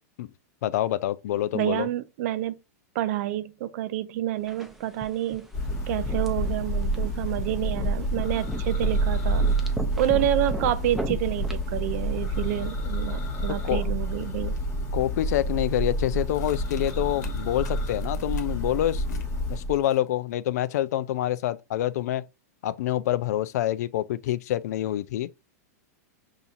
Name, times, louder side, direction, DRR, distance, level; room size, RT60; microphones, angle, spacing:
voice 1, 0.6-1.9 13.6-13.8 14.9-19.2 19.5-22.2 22.6-25.3, left 13 dB, 70° left, 0.4 m, -27 dB
voice 2, 1.5-2.6 2.9-5.5 5.9-9.5 10.0-14.6, right 13 dB, 60° right, 0.5 m, -28 dB
sound 1, 4.5-12.7, right 1 dB, ahead, 0.6 m, -39 dB
Church bell, 5.5-19.8, right 1 dB, 25° left, 1.1 m, -28 dB
sound 2, 14.6-14.7 15.1-15.5 16.3-18.7 19.1-19.3 19.6-20.3, left 6 dB, 85° left, 1.0 m, -51 dB
5.6 x 2.8 x 2.4 m
hypercardioid pair, 120°, 9 cm